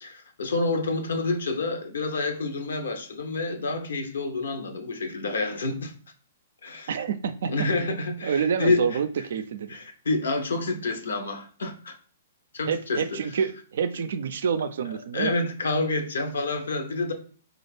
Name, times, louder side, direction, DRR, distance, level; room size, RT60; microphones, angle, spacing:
voice 1, 0.0-5.9 6.6-6.9 7.5-9.0 9.7-12.0 12.5-13.2 14.8-17.1, left 3 dB, 75° left, 0.7 m, -28 dB
voice 2, 6.9-7.5 8.2-9.7 12.7-15.4, right 7 dB, 65° right, 0.4 m, -27 dB
4.2 x 2.4 x 3.2 m
hypercardioid pair, 125°, 0 cm